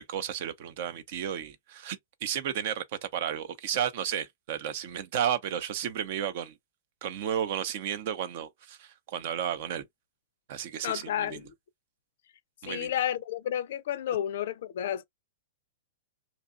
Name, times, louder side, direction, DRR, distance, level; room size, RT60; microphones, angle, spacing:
voice 1, 0.0-6.5 7.0-9.9 10.5-11.4 12.6-12.9, right 9 dB, 55° right, 0.6 m, -33 dB
voice 2, 10.8-11.5 12.6-15.0, left 11 dB, 60° left, 0.4 m, -31 dB
2.7 x 2.3 x 2.5 m
hypercardioid pair, 105°, 0 cm